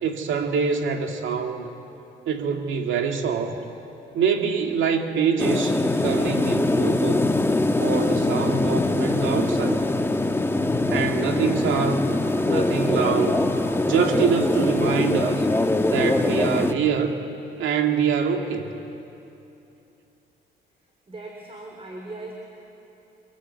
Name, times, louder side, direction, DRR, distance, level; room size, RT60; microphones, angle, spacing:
voice 1, 0.0-1.7 2.3-3.6 4.1-7.3 7.8-9.8 10.9-12.0 12.5-13.4 13.9-15.5 15.9-17.1 17.6-18.7, right 6 dB, 75° right, 4 dB, 2.2 m, -25 dB
sound 1, 5.4-16.7, left 2 dB, 10° left, 1.3 m, -22 dB
voice 2, 21.1-22.3, right 2 dB, 30° right, 1 dB, 3.5 m, -38 dB
26.5 x 23.0 x 8.2 m, 2.8 s
cardioid pair, 90°, 20 cm